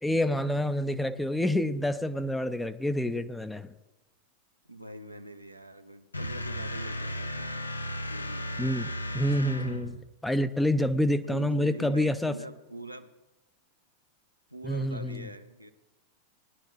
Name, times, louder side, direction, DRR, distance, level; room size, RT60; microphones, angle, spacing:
voice 1, 0.0-3.7 8.6-12.4 14.6-15.3, left 1 dB, 5° left, 11 dB, 0.5 m, -28 dB
voice 2, 4.6-7.7 8.1-8.5 11.2-13.1 14.5-15.7, right 1 dB, 85° right, 7 dB, 0.7 m, -43 dB
sound 1, 6.1-10.1, left 1 dB, 80° left, 0.6 m, -35 dB
19.0 x 10.5 x 3.1 m, 1.0 s
figure-of-eight pair, 90°, 0 cm